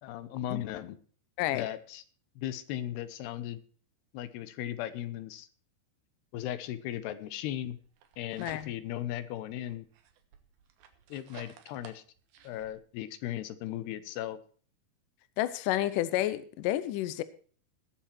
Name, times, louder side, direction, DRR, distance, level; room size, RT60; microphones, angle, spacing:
voice 1, 0.0-1.0 1.5-2.0 2.4-3.6 4.1-5.5 6.3-7.8 8.2-9.9 11.1-12.0 12.4-14.4, left 12 dB, 90° left, 12 dB, 3.1 m, -37 dB
sound 1, 7.8-9.0 9.5-12.7, right 8 dB, 70° right, 3.1 m, -53 dB
voice 2, 8.4-8.7 15.4-17.2, left 14 dB, 75° left, 14 dB, 2.1 m, -30 dB
19.5 x 7.4 x 4.4 m, 0.43 s
omnidirectional pair, 4.5 m